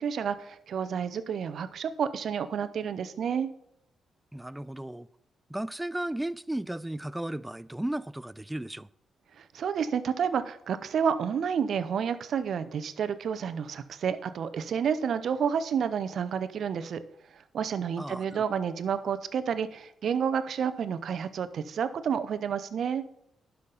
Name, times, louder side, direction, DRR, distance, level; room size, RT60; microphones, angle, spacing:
voice 1, 0.0-3.5 9.5-17.0 17.5-23.0, right 7 dB, 70° right, 0.6 m, -30 dB
voice 2, 4.3-5.1 5.5-8.9 18.0-18.3, right 1 dB, 10° right, 0.3 m, -34 dB
11.5 x 5.8 x 3.9 m
cardioid pair, 65°, 0 cm